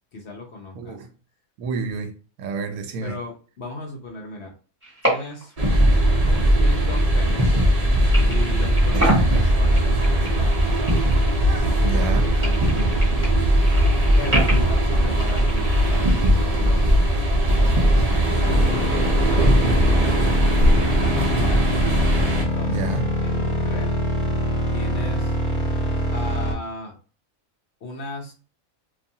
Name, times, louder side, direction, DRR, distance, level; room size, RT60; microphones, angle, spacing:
voice 1, 0.1-1.0 3.0-4.5 5.0-5.5 6.6-7.6 8.2-10.6 11.6-13.1 14.1-17.0 17.5-21.6 22.3-22.9 23.2-24.0 24.7-25.4 26.1-26.9 27.8-28.3, left 2 dB, 60° left, 0.8 m, -36 dB
voice 2, 0.8-1.1 1.6-3.2 8.9-9.2 11.8-12.3 22.7-23.1, right 4 dB, 75° right, 1.0 m, -29 dB
sound 1, 4.8-5.6 5.9-7.8 8.1-11.7 12.0-16.3, right 1 dB, 10° right, 1.2 m, -30 dB
sound 2, 5.6-22.4, right 1 dB, 60° right, 0.4 m, -19 dB
sound 3, 18.4-26.5, left 1 dB, 35° left, 0.5 m, -25 dB
2.5 x 2.4 x 2.6 m
omnidirectional pair, 1.5 m